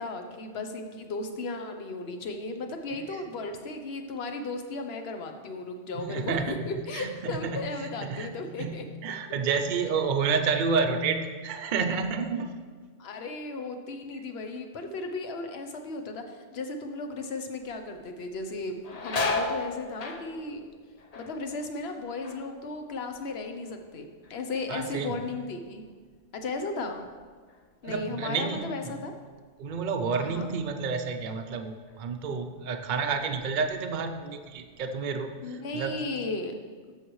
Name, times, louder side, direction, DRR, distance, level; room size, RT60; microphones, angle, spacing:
voice 1, 0.0-8.8 13.0-20.6 21.1-25.8 26.3-27.1 27.8-29.1 30.2-30.5 35.4-36.5, left 3 dB, 60° left, 6 dB, 1.0 m, -35 dB
voice 2, 5.9-6.6 6.9-8.3 8.6-12.6 24.7-25.2 27.8-28.7 29.6-36.0, right 5 dB, 50° right, 5 dB, 0.7 m, -30 dB
sound 1, 17.6-18.0 18.3-23.9 24.2-24.8 25.3-28.2 28.6-28.7 29.7-29.9 30.3-31.4 31.9-32.0 32.6-33.3 33.6-34.8, left 2 dB, 40° left, 0.6 m, -37 dB
12.5 x 6.5 x 3.1 m, 1.6 s
omnidirectional pair, 1.2 m